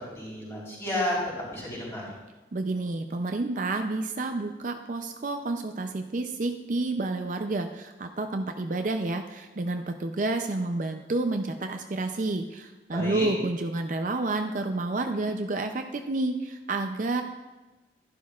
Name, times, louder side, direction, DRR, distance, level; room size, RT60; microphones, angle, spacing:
voice 1, 0.2-1.2 1.5-2.1 12.9-13.3, left 1 dB, 15° left, -6 dB, 3.9 m, -31 dB
voice 2, 2.5-17.2, right 2 dB, 45° right, 5 dB, 0.5 m, -29 dB
12.0 x 11.5 x 2.4 m, 1.1 s
head